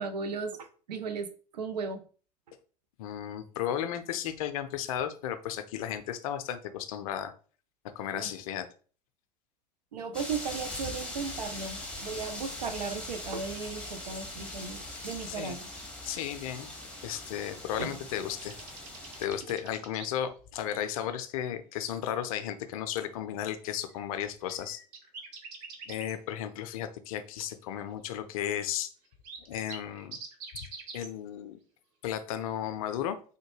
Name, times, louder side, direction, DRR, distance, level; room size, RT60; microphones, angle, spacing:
voice 1, 0.0-2.0 8.1-8.3 9.9-15.7 17.8-17.9 19.5-19.6, right 5 dB, 75° right, 9 dB, 0.5 m, -36 dB
voice 2, 3.0-7.3 7.9-8.7 15.3-15.6 16.1-16.7 17.0-18.6 19.2-24.8 25.9-28.9 29.5-30.2 30.5-30.6 30.9-31.6 32.0-33.2, left 10 dB, 60° left, 9 dB, 0.4 m, -34 dB
sound 1, 10.1-19.3, left 1 dB, 5° left, 0.7 m, -41 dB
sound 2, 18.4-20.1 23.4-23.5 23.9-26.1 28.8-28.9 29.1-31.1, right 4 dB, 50° right, 0.8 m, -45 dB
3.5 x 2.1 x 3.1 m, 0.40 s
figure-of-eight pair, 80°, 21 cm